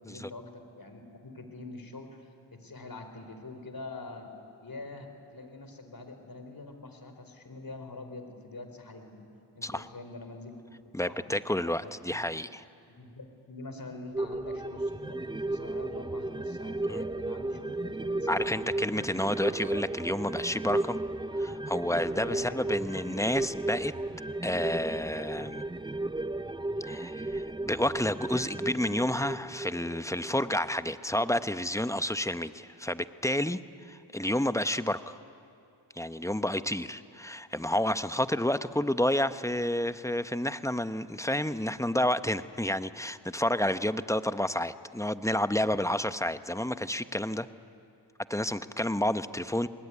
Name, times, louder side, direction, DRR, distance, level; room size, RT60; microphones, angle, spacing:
voice 1, 0.0-4.3 4.6-9.2 9.6-11.4 11.8-12.2 12.9-19.1 22.1-23.0, left 2 dB, 45° left, 7 dB, 4.3 m, -45 dB
voice 2, 10.9-12.6 16.9-17.0 18.3-21.0 21.4-23.9 24.4-25.6 26.8-33.6 33.8-35.2 36.0-47.5 48.3-49.7, left 1 dB, 5° left, 12 dB, 0.9 m, -30 dB
sound 1, 14.1-30.9 31.3-31.4, right 2 dB, 10° right, 0.5 m, -34 dB
26.0 x 20.5 x 9.9 m, 2.5 s
cardioid pair, 50°, 49 cm